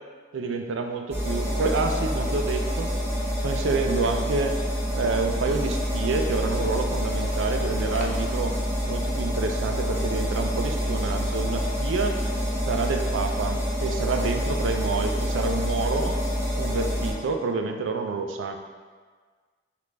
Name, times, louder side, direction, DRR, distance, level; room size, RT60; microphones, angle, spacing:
voice 1, 0.3-2.9 3.4-4.5 4.9-8.5 8.9-12.2 12.7-16.2 16.6-18.6, right 4 dB, 80° right, 5 dB, 0.4 m, -28 dB
sound 1, 1.1-17.1, equal, 15° right, 1.1 m, -27 dB
sound 2, 4.3-9.3, left 2 dB, 40° left, 0.4 m, -44 dB
5.1 x 2.5 x 3.3 m, 1.5 s
head